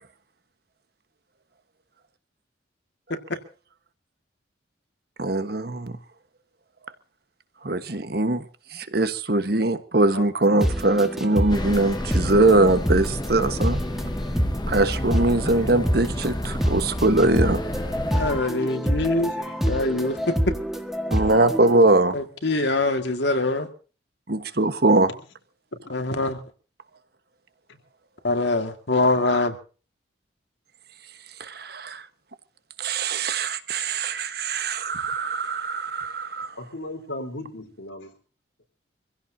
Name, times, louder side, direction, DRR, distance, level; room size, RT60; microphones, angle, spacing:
voice 1, 5.2-6.0 7.6-8.4 8.7-13.8 14.7-17.6 21.1-22.2 24.3-25.1 31.4-32.0 32.8-36.5, right 2 dB, 55° right, 1.3 m, -22 dB
sound 1, 10.4-21.8, equal, ahead, 1.6 m, -27 dB
sound 2, 11.5-18.4, left 1 dB, 20° left, 1.1 m, -30 dB
voice 2, 18.1-19.3 19.7-20.3 22.1-23.7 25.9-26.4 28.2-29.6, left 2 dB, 65° left, 2.0 m, -23 dB
voice 3, 19.1-19.6 27.7-27.8 36.6-38.1, left 1 dB, 85° left, 3.9 m, -37 dB
26.0 x 16.0 x 2.8 m
head